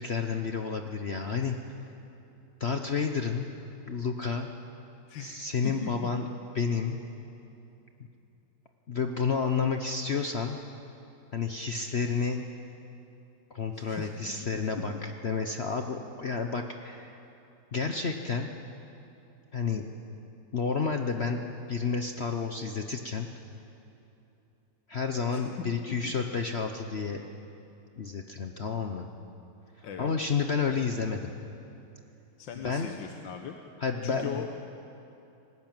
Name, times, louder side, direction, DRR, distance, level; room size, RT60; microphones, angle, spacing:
voice 1, 0.0-1.6 2.6-3.5 3.9-4.5 5.2-6.2 6.5-7.0 8.9-10.6 11.3-12.4 13.5-17.2 17.7-18.5 19.5-19.9 20.5-23.3 24.9-27.2 28.0-29.1 29.8-31.3 32.6-32.9 33.8-34.4, left 5 dB, 45° left, 5 dB, 0.9 m, -30 dB
voice 2, 5.1-5.9 13.7-14.1 14.7-15.0 25.3-25.4 25.9-26.1 29.8-30.1 32.4-33.6 34.0-34.5, left 7 dB, 85° left, 4 dB, 1.7 m, -39 dB
20.0 x 18.0 x 9.0 m, 2.9 s
omnidirectional pair, 2.0 m